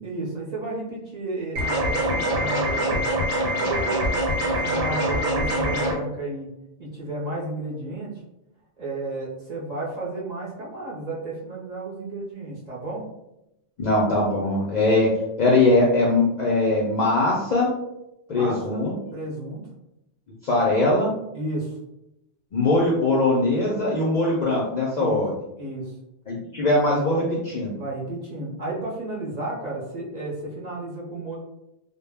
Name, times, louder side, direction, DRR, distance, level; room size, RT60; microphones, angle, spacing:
voice 1, 0.0-3.0 3.5-6.5 6.8-8.1 8.8-13.1 18.3-19.6 21.3-21.8 25.0-25.2 25.6-25.9 27.8-31.4, right 2 dB, 45° right, -6 dB, 0.6 m, -32 dB
sound 1, 1.6-5.9, equal, 85° right, 1.0 m, -24 dB
voice 2, 13.8-15.1 15.4-17.7 18.3-18.9 20.4-21.1 22.5-25.3 26.3-27.7, left 2 dB, 55° left, -5 dB, 0.5 m, -21 dB
2.1 x 2.0 x 3.3 m, 0.88 s
omnidirectional pair, 1.2 m